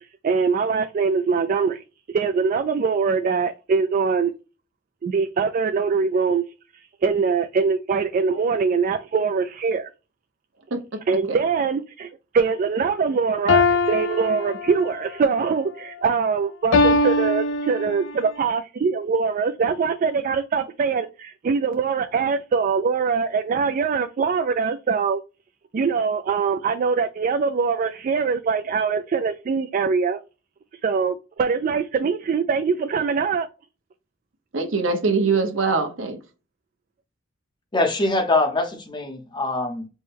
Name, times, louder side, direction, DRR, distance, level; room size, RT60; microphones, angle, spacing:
voice 1, 0.0-1.8 2.1-4.3 5.0-6.4 6.7-9.9 11.1-25.2 25.7-30.2 30.8-33.5, right 5 dB, 45° right, 0.3 m, -23 dB
voice 2, 10.7-11.0 11.3-11.4 34.5-36.2, right 4 dB, 85° right, 0.9 m, -23 dB
sound 1, 13.5-15.0 16.7-18.2, left 3 dB, 70° left, 0.4 m, -21 dB
voice 3, 37.7-39.9, left 2 dB, 25° left, 0.8 m, -23 dB
4.4 x 2.2 x 3.3 m
head